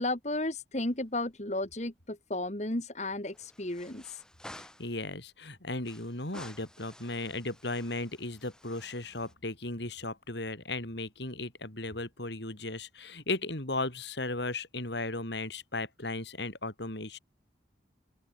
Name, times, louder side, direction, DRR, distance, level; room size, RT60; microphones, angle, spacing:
voice 1, 0.0-4.2, left 2 dB, 35° left, 2.1 m, -33 dB
sound 1, 0.8-1.5 1.8-1.9 3.3-5.0 5.8-9.3, left 1 dB, 5° left, 7.0 m, -52 dB
voice 2, 4.6-17.2, left 2 dB, 70° left, 4.4 m, -36 dB
open air
head